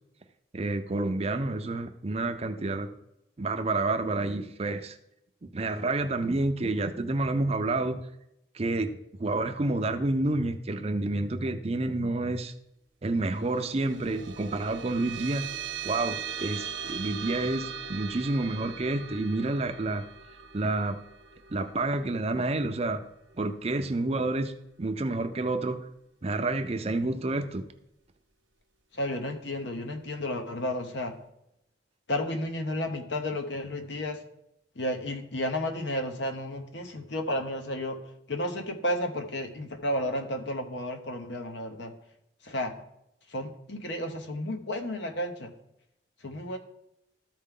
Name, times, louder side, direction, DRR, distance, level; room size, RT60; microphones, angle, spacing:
voice 1, 0.5-2.9 3.4-5.0 5.4-8.0 8.5-8.9 9.2-12.5 13.0-15.5 15.8-20.0 20.5-21.0 21.5-23.0 23.4-24.5 24.8-25.8 26.2-27.6, right 2 dB, 35° right, 7 dB, 0.5 m, -29 dB
sound 1, 13.3-24.1, right 7 dB, 75° right, 1.1 m, -40 dB
voice 2, 28.9-31.2 32.1-34.2 34.8-38.0 38.3-41.9 42.4-42.7 43.3-45.5 46.2-46.6, left 1 dB, 65° left, 5 dB, 1.0 m, -32 dB
13.5 x 4.5 x 3.8 m, 0.81 s
head